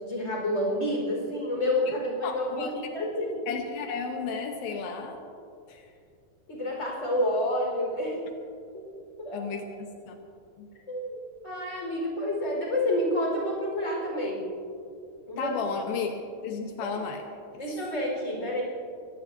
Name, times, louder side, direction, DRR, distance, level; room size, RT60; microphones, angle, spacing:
voice 1, 0.0-2.5 2.7-3.3 6.5-8.2 8.7-8.9 9.2-9.5 10.9-14.5 15.3-15.5 17.6-18.6, left 1 dB, 20° left, -2 dB, 4.6 m, -29 dB
voice 2, 1.9-2.7 3.5-5.2 5.7-5.8 9.3-10.1 10.6-10.7 15.4-16.1 16.4-17.2, left 5 dB, 80° left, 3 dB, 2.8 m, -33 dB
24.0 x 18.0 x 2.7 m, 2.4 s
omnidirectional pair, 4.2 m